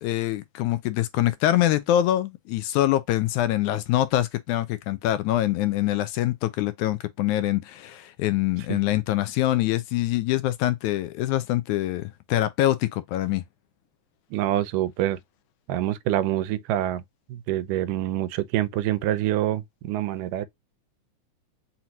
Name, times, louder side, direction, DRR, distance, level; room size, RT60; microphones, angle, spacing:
voice 1, 0.0-13.4, left 14 dB, 80° left, 1.9 m, -24 dB
voice 2, 14.3-15.2 15.7-17.0 17.3-20.5, right 13 dB, 90° right, 2.2 m, -26 dB
5.8 x 2.6 x 2.8 m
omnidirectional pair, 3.6 m